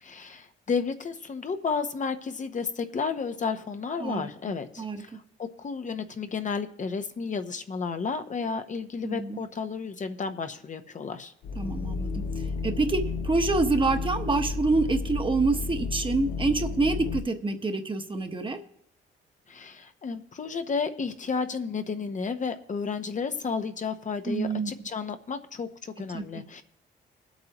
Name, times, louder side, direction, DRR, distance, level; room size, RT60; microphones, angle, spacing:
voice 1, 0.0-5.1 5.4-11.3 19.5-26.6, left 5 dB, 40° left, 7 dB, 0.8 m, -32 dB
voice 2, 9.0-9.4 11.6-12.2 12.6-18.6 24.3-24.7 26.1-26.4, right 3 dB, 25° right, 6 dB, 1.1 m, -27 dB
sound 1, 11.4-17.2, left 4 dB, 70° left, 0.7 m, -32 dB
21.0 x 8.1 x 3.0 m, 0.68 s
cardioid pair, 90°, 20 cm